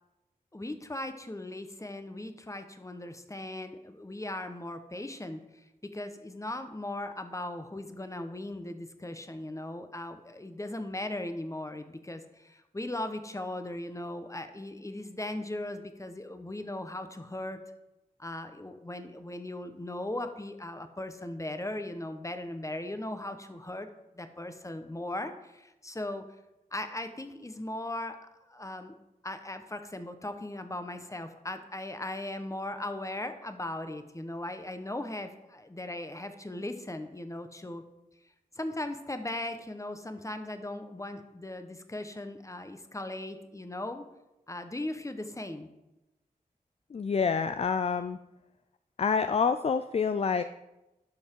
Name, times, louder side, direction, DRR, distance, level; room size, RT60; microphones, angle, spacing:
voice 1, 0.5-17.6 18.2-23.9 24.1-26.2 26.7-28.2 28.5-29.0 29.2-37.8 38.5-44.1 44.5-45.7, left 1 dB, 20° left, 8 dB, 1.0 m, -38 dB
voice 2, 46.9-48.2 49.0-50.4, left 5 dB, 40° left, 10 dB, 0.4 m, -27 dB
11.5 x 5.5 x 4.6 m, 0.95 s
cardioid pair, 45°, 16 cm